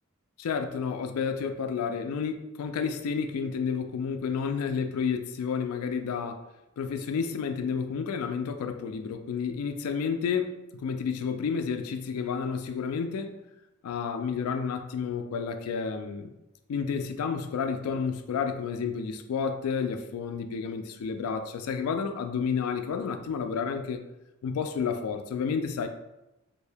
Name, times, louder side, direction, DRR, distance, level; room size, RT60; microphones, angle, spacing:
voice 1, 0.4-6.4 6.8-13.4 13.8-16.3 16.7-24.0 24.4-25.9, left 6 dB, 85° left, 7 dB, 0.3 m, -30 dB
2.7 x 2.7 x 3.4 m, 0.94 s
head